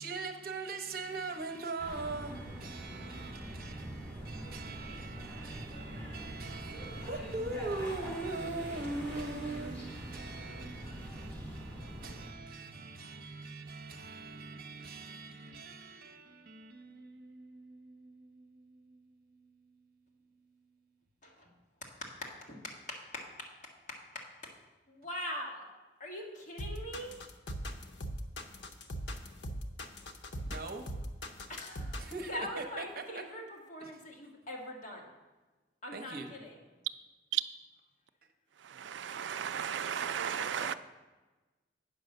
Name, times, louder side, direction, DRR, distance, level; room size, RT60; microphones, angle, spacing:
voice 1, 0.0-19.6 30.5-30.9 32.0-33.3 33.8-34.0 35.9-36.3, right 3 dB, 55° right, 6 dB, 0.9 m, -42 dB
sound 1, 1.8-12.2, equal, 10° left, 3.0 m, -44 dB
voice 2, 21.8-23.5 23.9-24.5 24.9-25.7 26.0-27.1 31.5-32.0 32.3-35.0 35.8-36.7 39.7-40.8, left 1 dB, 45° left, -1 dB, 1.6 m, -43 dB
sound 2, 26.6-32.2, equal, 85° left, 0.8 m, -40 dB
voice 3, 38.6-40.7, right 8 dB, 85° right, 12 dB, 0.4 m, -35 dB
8.9 x 5.5 x 6.6 m, 1.2 s
head